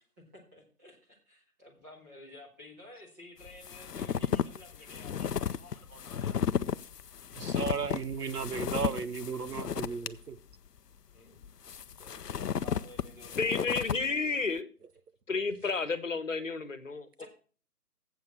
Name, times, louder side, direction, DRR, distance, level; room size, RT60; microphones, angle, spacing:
voice 1, 0.2-6.4 11.1-14.0 17.2-17.3, left 1 dB, 10° right, -5 dB, 1.5 m, -52 dB
sound 1, 3.4-10.1 10.5-10.6 11.4-14.0, left 8 dB, 85° left, 0.6 m, -34 dB
voice 2, 7.4-10.4, right 6 dB, 75° right, 14 dB, 0.9 m, -35 dB
voice 3, 13.4-14.7 15.3-17.3, left 4 dB, 55° left, 13 dB, 1.3 m, -31 dB
7.9 x 6.7 x 7.2 m, 0.39 s
figure-of-eight pair, 160°, 47 cm